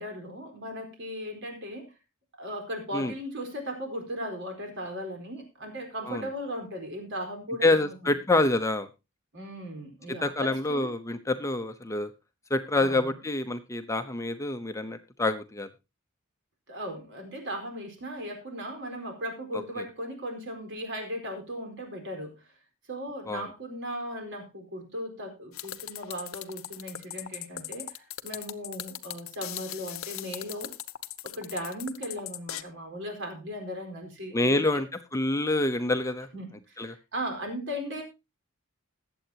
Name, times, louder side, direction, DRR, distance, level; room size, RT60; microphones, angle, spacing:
voice 1, 0.0-1.9 2.4-8.1 9.3-10.9 12.8-13.1 16.7-22.4 22.9-30.7 31.2-34.8 36.3-38.0, equal, 60° right, 3 dB, 4.6 m, -37 dB
voice 2, 7.6-8.9 10.2-12.1 12.5-15.7 23.3-23.5 34.3-34.9 35.1-36.3 36.8-37.0, left 2 dB, 15° left, 8 dB, 0.8 m, -27 dB
sound 1, 25.5-32.6, left 12 dB, 75° left, 0.8 m, -39 dB
21.0 x 7.9 x 2.9 m, 0.26 s
head